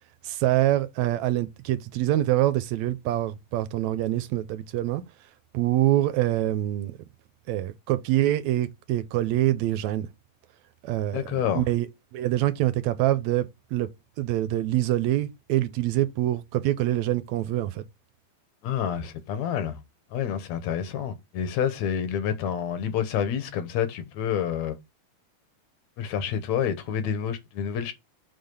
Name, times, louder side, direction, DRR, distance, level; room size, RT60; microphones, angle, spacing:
voice 1, 0.2-5.0 5.5-7.0 7.5-10.1 10.8-11.2 11.5-13.5 13.7-13.9 14.2-17.8, right 14 dB, 80° right, 1.9 m, -25 dB
voice 2, 11.1-11.7 18.6-19.8 20.1-24.8 26.0-27.9, left 8 dB, 75° left, 2.2 m, -28 dB
6.7 x 4.0 x 5.3 m
omnidirectional pair, 3.3 m